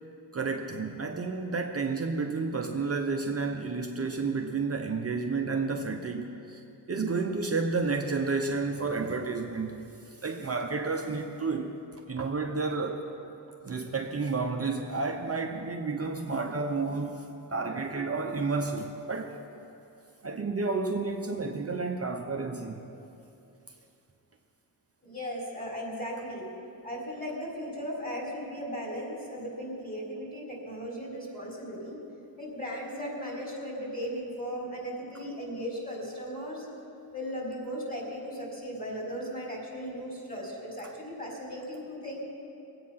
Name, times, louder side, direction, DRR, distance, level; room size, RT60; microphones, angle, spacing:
voice 1, 0.3-6.6 6.9-11.7 12.1-13.0 13.6-19.4 20.2-22.8 35.1-35.2 40.8-40.9, right 4 dB, 35° right, 2 dB, 0.8 m, -31 dB
voice 2, 25.0-26.5 26.8-32.0 32.4-36.7 37.1-42.2, equal, 20° left, -3 dB, 4.2 m, -37 dB
21.5 x 8.6 x 5.8 m, 2.8 s
wide cardioid pair, 110°, 43 cm